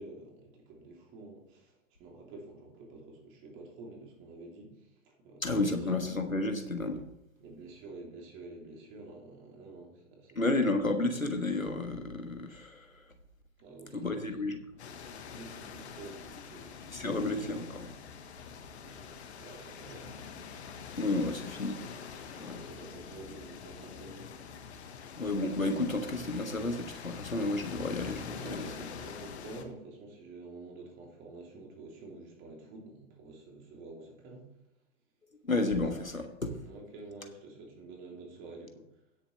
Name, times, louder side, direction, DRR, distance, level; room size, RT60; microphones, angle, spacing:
voice 1, 0.0-5.9 7.4-10.7 13.6-14.3 15.3-17.3 18.3-18.4 18.8-20.8 21.2-21.4 22.2-24.3 28.3-34.4 36.6-38.8, right 3 dB, 30° right, 0 dB, 3.2 m, -49 dB
voice 2, 5.4-7.0 10.3-12.9 13.9-14.6 16.9-17.9 21.0-21.8 22.4-22.6 25.2-28.6 35.5-36.6, left 2 dB, 90° left, 6 dB, 1.5 m, -31 dB
sound 1, 14.8-29.6, left 6 dB, 55° left, 1.5 m, -45 dB
16.5 x 7.1 x 3.3 m, 0.84 s
figure-of-eight pair, 105°, 40 cm